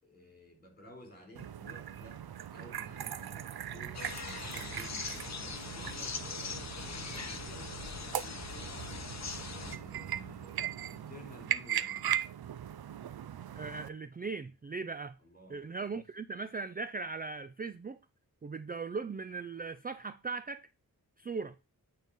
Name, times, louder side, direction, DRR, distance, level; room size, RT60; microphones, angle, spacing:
voice 1, 0.0-9.2 9.5-12.2 15.2-15.6 15.9-16.1, left 1 dB, 25° left, 4.0 m, -53 dB
sound 1, 1.4-13.9, right 10 dB, 75° right, 0.6 m, -39 dB
sound 2, 3.9-9.8, left 5 dB, 45° left, 0.8 m, -41 dB
voice 2, 13.5-15.2 15.5-18.0 18.4-20.7 21.2-21.6, right 4 dB, 25° right, 0.4 m, -39 dB
9.0 x 4.0 x 5.4 m
wide cardioid pair, 95°, 37 cm